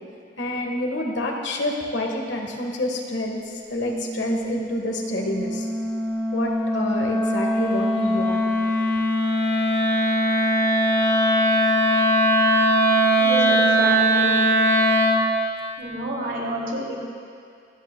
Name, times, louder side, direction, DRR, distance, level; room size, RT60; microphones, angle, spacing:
voice 1, 0.4-5.7 6.3-8.4, left 1 dB, 75° left, 1 dB, 1.4 m, -28 dB
Wind instrument woodwind instrument, 3.8-15.3, equal, 15° left, 1.3 m, -21 dB
voice 2, 13.2-14.4 15.8-17.0, right 1 dB, 75° right, -3 dB, 2.6 m, -29 dB
25.5 x 9.1 x 2.2 m, 2.3 s
head